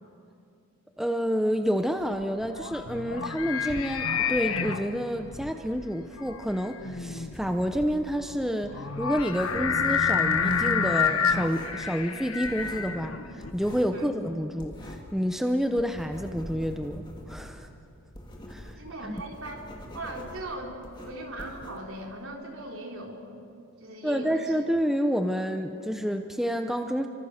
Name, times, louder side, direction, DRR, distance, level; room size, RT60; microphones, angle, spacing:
voice 1, 1.0-17.7 18.5-18.8 19.0-19.2 24.0-27.1, equal, ahead, 6 dB, 0.8 m, -29 dB
sound 1, 2.0-13.5, left 6 dB, 80° left, 1.4 m, -29 dB
sound 2, 6.2-8.2 8.4-11.0 11.3-11.9 12.1-15.2 15.5-22.2, equal, 20° left, 2.6 m, -45 dB
voice 2, 18.8-19.6 19.9-23.4 23.8-24.5, right 1 dB, 70° right, 1 dB, 3.8 m, -39 dB
30.0 x 25.0 x 6.6 m, 2.5 s
head